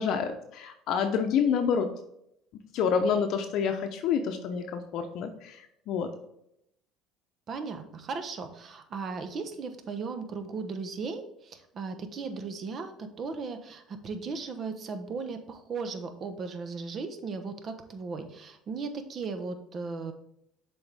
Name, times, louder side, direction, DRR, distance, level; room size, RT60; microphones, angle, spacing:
voice 1, 0.0-1.9 2.7-6.1, left 6 dB, 65° left, 6 dB, 0.7 m, -28 dB
voice 2, 7.5-20.1, right 4 dB, 45° right, 8 dB, 0.9 m, -37 dB
7.0 x 4.4 x 3.5 m, 0.76 s
supercardioid pair, 95°, 0 cm